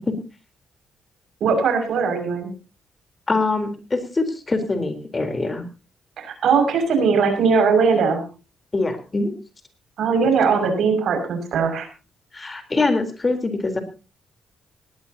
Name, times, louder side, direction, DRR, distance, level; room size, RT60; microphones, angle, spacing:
voice 1, 1.4-2.5 6.2-8.2 10.0-11.9, right 5 dB, 75° right, 5 dB, 6.3 m, -20 dB
voice 2, 3.3-5.6 8.7-9.3 12.3-13.8, left 3 dB, 30° left, 7 dB, 3.9 m, -23 dB
18.5 x 18.5 x 2.9 m, 0.33 s
cardioid pair, 70°, 0 cm